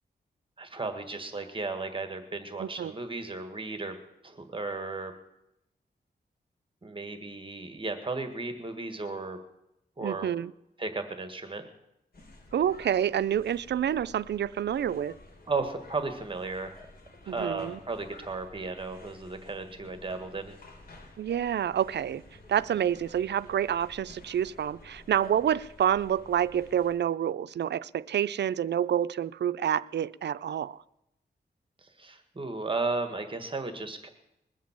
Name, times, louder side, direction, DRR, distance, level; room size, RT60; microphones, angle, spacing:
voice 1, 0.6-4.0 4.2-5.1 6.8-9.4 10.0-10.3 10.8-11.6 15.5-16.9 17.2-20.5 31.8-34.1, right 3 dB, 30° right, 1.7 m, -35 dB
voice 2, 2.6-2.9 10.0-10.5 12.5-15.1 17.3-17.8 21.2-22.2 22.5-30.8, right 9 dB, 80° right, 0.4 m, -28 dB
sound 1, 12.1-26.9, left 2 dB, 60° left, 3.2 m, -52 dB
21.0 x 7.4 x 7.3 m
wide cardioid pair, 115°, 18 cm